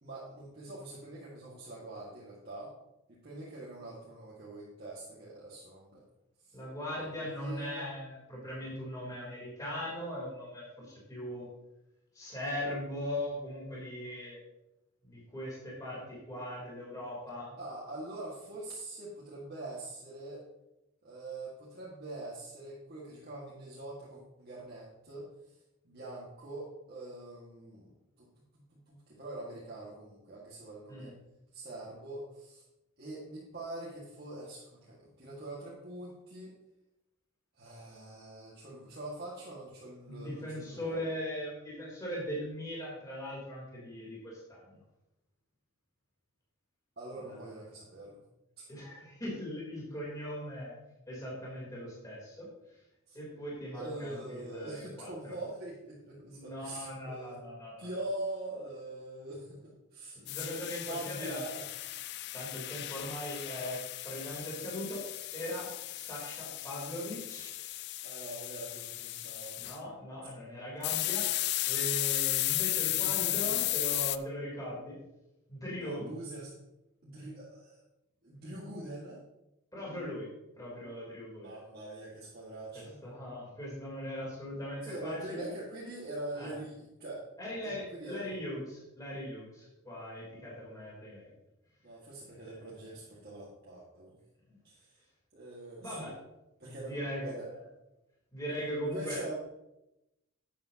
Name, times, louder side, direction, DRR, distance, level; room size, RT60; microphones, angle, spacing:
voice 1, 0.0-2.7 3.1-6.0 6.4-6.6 6.9-7.8 17.6-20.4 21.0-25.6 25.8-27.9 28.2-31.1 31.5-32.6 33.0-36.5 37.6-41.1 47.0-48.2 53.1-53.2 53.7-57.4 57.8-60.2 60.8-61.7 68.0-69.6 73.0-73.5 75.8-76.6 77.0-77.8 78.2-79.2 81.4-83.0 84.8-87.2 87.6-88.3 91.8-94.2 94.6-95.0 95.3-96.1 96.6-97.5 98.9-99.3, right 2 dB, 50° right, -6 dB, 1.9 m, -44 dB
voice 2, 6.5-11.5 12.1-14.4 15.0-17.6 30.9-31.1 40.1-44.8 47.2-47.4 48.7-50.8 51.1-52.5 53.1-55.1 56.3-57.9 60.3-61.4 62.3-63.8 64.0-65.0 65.3-67.5 69.6-75.0 75.5-76.1 79.7-80.3 80.5-81.6 82.7-85.5 86.3-86.5 87.4-91.3 92.3-92.5 95.8-96.1 96.6-97.6 98.3-99.2, equal, 15° left, -6 dB, 3.5 m, -40 dB
sound 1, 60.3-69.8 70.8-74.2, left 16 dB, 50° left, 0.4 m, -34 dB
11.5 x 8.7 x 2.9 m, 0.93 s
head